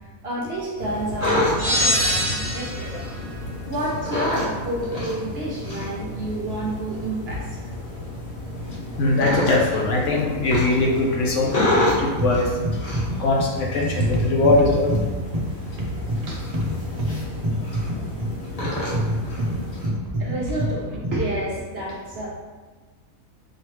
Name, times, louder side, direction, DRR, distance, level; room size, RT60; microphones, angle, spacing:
voice 1, 0.2-2.9 3.6-7.5 15.6-15.7 16.1-16.4 20.2-22.3, right 1 dB, 55° right, -3 dB, 0.8 m, -29 dB
sound 1, 0.8-19.9, left 1 dB, 30° left, 0.9 m, -29 dB
sound 2, 1.6-3.0, equal, 15° right, 1.0 m, -23 dB
voice 2, 9.0-12.5 13.2-14.9, left 2 dB, 65° left, -1 dB, 0.9 m, -21 dB
sound 3, 11.7-21.3, equal, 90° right, 0.3 m, -27 dB
4.8 x 3.0 x 3.2 m, 1.3 s
omnidirectional pair, 1.5 m